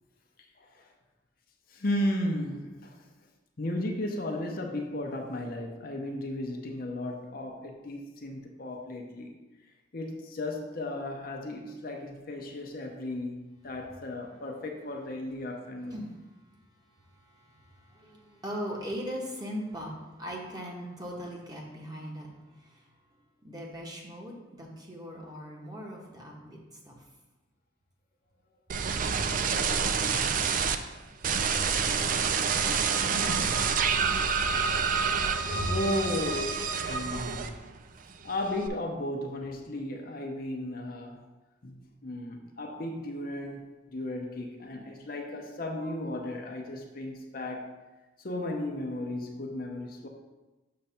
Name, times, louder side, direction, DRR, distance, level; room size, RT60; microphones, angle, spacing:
voice 1, 0.6-0.9 1.7-3.0 3.6-9.3 9.9-16.0 34.0-34.1 35.7-37.6 38.2-41.2 41.6-47.7 48.2-50.1, left 1 dB, 50° left, 2 dB, 0.7 m, -35 dB
voice 2, 16.5-22.9 23.4-27.0 35.5-35.8, equal, 20° right, -2 dB, 1.1 m, -40 dB
sound 1, 28.7-30.8 31.2-37.8 38.1-38.7, right 6 dB, 45° right, 0.4 m, -28 dB
sound 2, 31.8-37.0, right 1 dB, 80° right, 0.9 m, -37 dB
6.7 x 3.2 x 5.6 m, 1.1 s
head